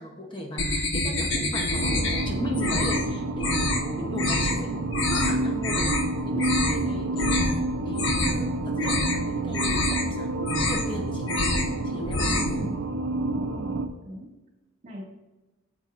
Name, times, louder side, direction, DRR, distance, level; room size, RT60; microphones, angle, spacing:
voice 1, 0.0-5.9 6.2-11.3 11.8-12.3, right 1 dB, 25° left, 1 dB, 1.0 m, -37 dB
sound 1, 0.6-2.2 2.5-3.1 3.4-3.8 4.2-4.6 4.9-5.3 5.6-6.0 6.3-6.8 7.1-7.5 7.9-8.5 8.8-9.2 9.5-10.0 10.4-10.9 11.2-11.7 12.0-12.6, left 2 dB, 75° left, 1.2 m, -26 dB
sound 2, 1.7-13.9, right 2 dB, 80° right, 0.6 m, -29 dB
voice 2, 12.2-12.8 13.3-14.3 14.8-15.0, equal, 40° right, -1 dB, 2.0 m, -40 dB
9.6 x 7.0 x 2.5 m, 1.1 s
head